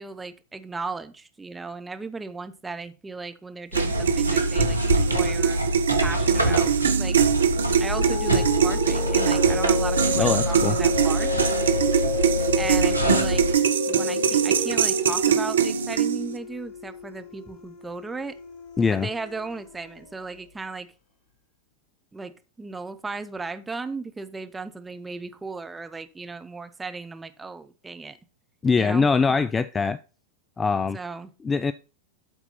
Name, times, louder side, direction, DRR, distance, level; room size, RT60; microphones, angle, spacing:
voice 1, 0.0-5.6 6.0-7.2 7.8-11.4 12.5-13.4 13.8-18.4 18.9-20.9 22.1-28.2 28.8-29.1 30.9-31.3, right 3 dB, 10° right, 0.8 m, -36 dB
sound 1, 3.7-13.6, right 1 dB, 85° right, 1.1 m, -26 dB
sound 2, 3.8-16.4, right 7 dB, 65° right, 0.7 m, -23 dB
sound 3, 7.4-20.2, left 7 dB, 45° left, 1.8 m, -33 dB
voice 2, 10.2-10.8 18.8-19.1 28.6-30.0 30.6-31.0 31.4-31.7, left 5 dB, 15° left, 0.3 m, -22 dB
12.5 x 4.2 x 4.2 m
figure-of-eight pair, 90°, 0 cm